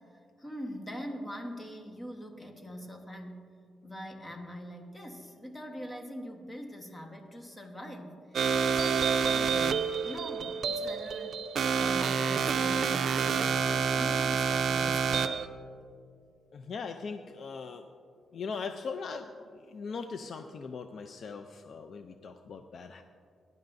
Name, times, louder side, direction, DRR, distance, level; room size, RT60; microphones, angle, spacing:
voice 1, 0.4-3.5 3.8-11.4 11.8-15.4, equal, 15° left, 3 dB, 1.3 m, -43 dB
sound 1, 8.3-15.5, right 6 dB, 60° right, 0.5 m, -28 dB
voice 2, 16.5-17.8 18.3-23.0, left 5 dB, 55° left, 6 dB, 0.5 m, -40 dB
19.0 x 10.5 x 2.6 m, 2.3 s
cardioid pair, 115°, 0 cm